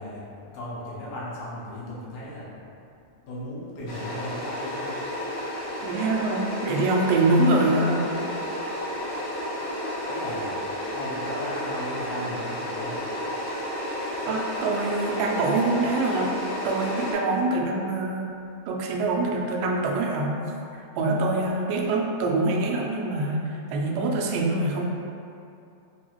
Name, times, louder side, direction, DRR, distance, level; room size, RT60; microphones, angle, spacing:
voice 1, 0.0-2.8 3.2-5.1 9.0-9.1 9.7-13.4, left 1 dB, 85° left, -8 dB, 1.5 m, -37 dB
sound 1, 3.9-17.1, left 1 dB, 70° left, 2.2 m, -32 dB
voice 2, 5.8-8.0 14.3-16.4 16.6-18.3 18.7-20.4 20.7-24.8, right 2 dB, 80° right, -1 dB, 2.1 m, -24 dB
5.1 x 2.4 x 2.9 m, 2.6 s
omnidirectional pair, 3.9 m